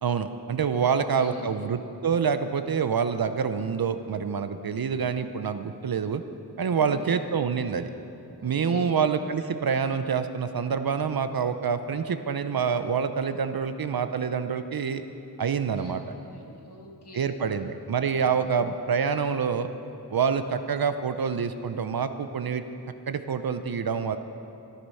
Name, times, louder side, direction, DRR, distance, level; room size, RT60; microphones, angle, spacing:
voice 1, 0.0-6.2 6.6-7.9 8.4-15.0 15.4-16.0 17.1-19.7 20.1-22.6 23.1-24.2, right 6 dB, 60° right, 10 dB, 0.6 m, -27 dB
voice 2, 0.8-1.6 6.7-7.0 8.4-8.9 15.8-17.7 18.4-18.6, left 2 dB, 75° left, 0 dB, 1.9 m, -46 dB
14.0 x 10.5 x 5.6 m, 2.7 s
wide cardioid pair, 90°, 40 cm